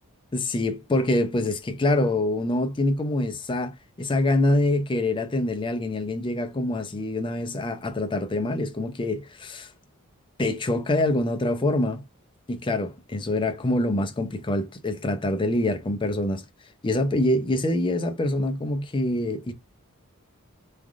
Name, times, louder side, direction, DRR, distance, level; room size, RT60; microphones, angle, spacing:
voice 1, 0.3-9.7 10.4-12.0 12.5-16.4 16.8-19.5, left 1 dB, 20° left, 0.5 m, -25 dB
3.3 x 2.4 x 2.4 m
head